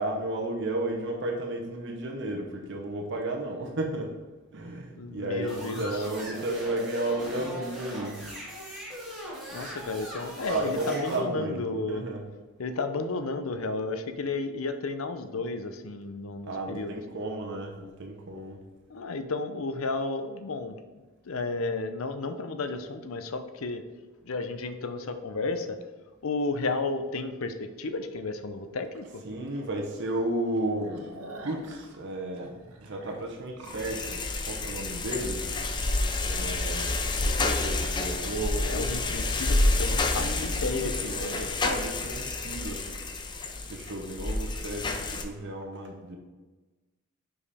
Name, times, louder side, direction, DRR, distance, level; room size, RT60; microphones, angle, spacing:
voice 1, 0.0-4.1 4.5-8.2 10.5-12.2 16.4-18.6 29.2-31.1 31.4-35.8 36.2-38.9 40.1-42.9 43.7-46.2, right 1 dB, 55° right, 1 dB, 0.7 m, -33 dB
voice 2, 5.0-5.9 9.5-12.0 12.6-16.9 18.9-20.8 21.3-23.8 24.3-25.8 26.2-29.2 38.6-41.5, left 3 dB, 70° left, 9 dB, 0.6 m, -32 dB
sound 1, 5.4-11.2, right 1 dB, ahead, 1.8 m, -40 dB
sound 2, 29.0-29.1 29.5-29.6 30.0-30.1 30.5-34.2, right 1 dB, 80° right, 0.9 m, -46 dB
sound 3, 33.7-45.2, left 2 dB, 20° left, 0.4 m, -29 dB
5.2 x 5.0 x 4.2 m, 1.2 s
head